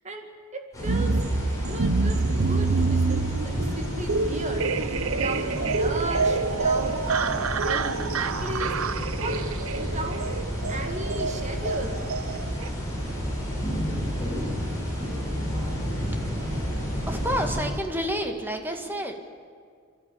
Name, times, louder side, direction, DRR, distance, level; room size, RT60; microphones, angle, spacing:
voice 1, 0.5-9.4 9.7-10.2 10.7-12.0, right 1 dB, 35° right, 4 dB, 2.2 m, -36 dB
sound 1, 0.7-17.7, equal, 15° left, 7.1 m, -31 dB
sound 2, 0.9-12.7, right 4 dB, 70° right, 0.7 m, -27 dB
voice 2, 17.1-19.1, equal, 10° right, 4 dB, 1.8 m, -29 dB
29.0 x 12.0 x 8.5 m, 2.1 s
head